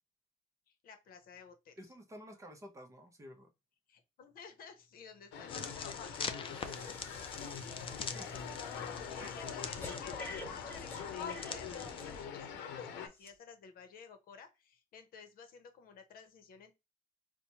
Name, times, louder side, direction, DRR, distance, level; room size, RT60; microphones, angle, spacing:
voice 1, 0.7-1.7 3.9-7.0 8.9-16.7, left 6 dB, 60° left, 0.8 m, -54 dB
voice 2, 1.8-3.5 8.1-8.3 9.2-9.4, equal, 20° right, 0.7 m, -51 dB
sound 1, 5.3-13.1, left 7 dB, 90° left, 0.7 m, -43 dB
sound 2, 5.5-12.3, left 6 dB, 30° left, 0.5 m, -44 dB
Breathing, 5.6-5.8 6.1-12.6 13.2-13.3, left 1 dB, 15° left, 1.0 m, -51 dB
4.1 x 2.2 x 2.9 m
cardioid pair, 110°, 17 cm